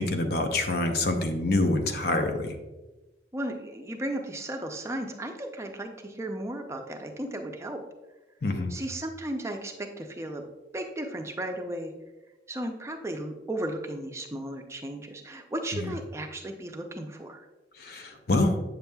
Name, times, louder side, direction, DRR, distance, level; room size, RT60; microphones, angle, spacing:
voice 1, 0.0-2.6 8.4-8.8 15.7-15.9 17.8-18.6, left 2 dB, 60° left, 6 dB, 0.7 m, -26 dB
voice 2, 3.3-7.8 8.7-10.5 10.7-11.9 12.5-17.5, right 1 dB, 15° right, 3 dB, 0.5 m, -35 dB
7.9 x 6.9 x 2.3 m, 1.1 s
head